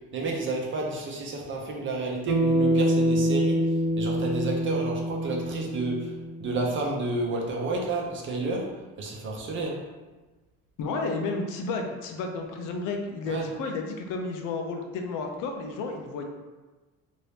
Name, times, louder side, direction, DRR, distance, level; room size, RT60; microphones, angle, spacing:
voice 1, 0.0-9.8 13.2-13.5, right 3 dB, 40° right, -1 dB, 0.7 m, -31 dB
Bass guitar, 2.3-6.7, right 1 dB, 70° right, 0.8 m, -25 dB
voice 2, 10.8-16.2, left 3 dB, 75° left, 3 dB, 0.6 m, -32 dB
2.8 x 2.6 x 3.3 m, 1.2 s
cardioid pair, 135°, 31 cm